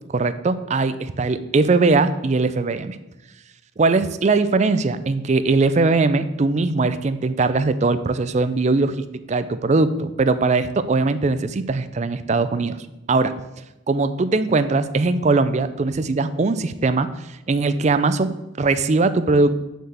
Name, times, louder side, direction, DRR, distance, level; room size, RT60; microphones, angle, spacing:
voice 1, 0.1-3.0 3.8-12.8 13.1-13.3 13.9-17.1 17.5-19.5, right 3 dB, 35° right, 12 dB, 0.4 m, -20 dB
6.4 x 4.7 x 6.7 m, 0.97 s
head